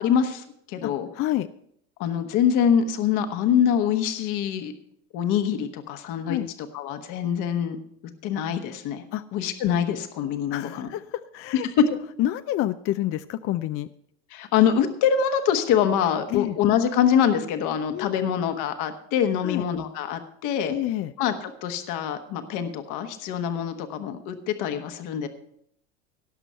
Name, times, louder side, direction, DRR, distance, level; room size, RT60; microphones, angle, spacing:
voice 1, 0.0-1.1 2.0-4.7 5.1-6.4 6.7-7.8 8.2-9.0 9.3-10.9 14.3-20.7 21.2-21.3 21.6-25.3, left 8 dB, 60° left, 7 dB, 1.3 m, -24 dB
voice 2, 0.8-1.5 6.2-6.5 9.1-9.2 10.5-11.7 12.2-13.9 16.3-16.6 17.9-18.3 19.4-19.7 20.7-21.1, left 14 dB, 40° left, 13 dB, 0.5 m, -28 dB
17.5 x 6.1 x 5.5 m, 0.72 s
supercardioid pair, 95°, 34 cm